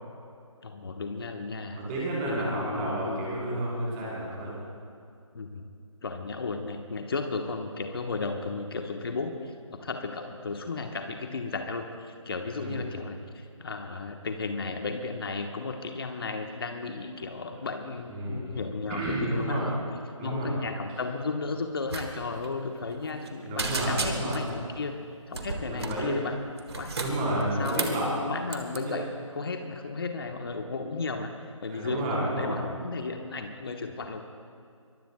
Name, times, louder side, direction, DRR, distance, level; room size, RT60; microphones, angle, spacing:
voice 1, 0.6-1.8 2.2-3.3 5.3-5.6 6.0-9.5 9.8-19.8 20.2-24.9 25.3-26.4 26.8-27.0 27.6-34.2, left 4 dB, 45° left, 5 dB, 1.2 m, -34 dB
voice 2, 1.7-4.6 12.5-12.8 18.1-18.5 18.9-19.7 20.2-20.5 23.4-24.4 25.7-26.2 27.0-28.1 28.7-29.0 31.7-32.6, right 1 dB, 15° right, -6 dB, 4.1 m, -31 dB
sound 1, 21.9-22.1 22.3-22.5 22.9-23.3 23.6-24.5 25.3-26.0 26.6-28.0 28.5-28.8, right 3 dB, 50° right, 1.7 m, -33 dB
23.5 x 22.5 x 2.3 m, 2.3 s
figure-of-eight pair, 150°, 17 cm